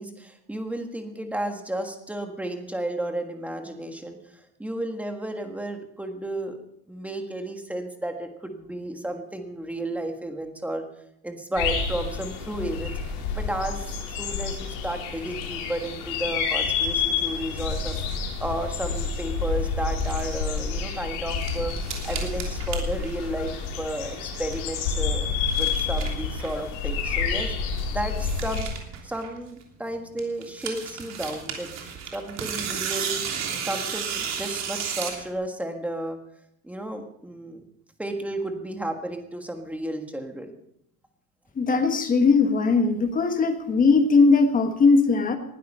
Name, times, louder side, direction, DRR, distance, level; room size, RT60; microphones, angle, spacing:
voice 1, 0.0-6.6 6.9-10.8 11.2-12.9 13.3-18.0 18.4-21.7 22.0-23.5 23.8-25.3 25.6-27.5 27.9-28.7 29.0-31.7 32.1-33.2 33.6-36.2 36.6-37.6 38.0-40.5, right 1 dB, 5° right, 5 dB, 1.5 m, -32 dB
sound 1, 11.5-28.6, left 5 dB, 65° left, 4.4 m, -29 dB
sound 2, 19.9-20.6 21.1-23.9 24.1-24.8 25.2-26.7 27.0-27.1 27.4-27.5 27.6-27.7 28.0-29.8 30.2-35.3, right 7 dB, 35° right, 3.2 m, -34 dB
voice 2, 41.5-45.4, left 4 dB, 20° left, 7 dB, 1.4 m, -19 dB
20.0 x 12.0 x 5.5 m, 0.77 s
cardioid pair, 165°, 44 cm